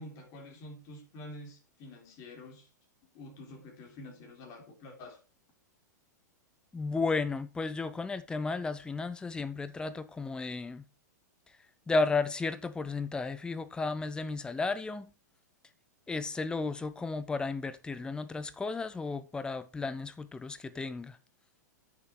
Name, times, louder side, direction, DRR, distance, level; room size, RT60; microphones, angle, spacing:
voice 1, 0.0-2.7 3.1-5.2, left 1 dB, 35° left, 3.7 m, -48 dB
voice 2, 6.7-10.8 11.9-15.1 16.1-21.2, left 3 dB, 10° left, 0.8 m, -33 dB
8.5 x 7.2 x 4.6 m
figure-of-eight pair, 100°, 10 cm